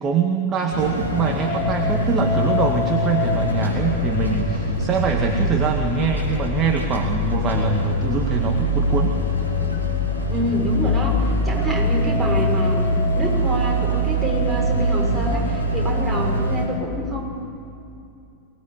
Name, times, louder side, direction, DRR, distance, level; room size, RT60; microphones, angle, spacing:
voice 1, 0.0-9.2, right 5 dB, 25° right, 2 dB, 2.0 m, -23 dB
sound 1, 0.7-16.7, equal, 85° left, 4.3 m, -23 dB
voice 2, 10.3-17.3, equal, 5° right, -3 dB, 6.6 m, -26 dB
23.5 x 19.5 x 9.6 m, 2.5 s
figure-of-eight pair, 90°, 0 cm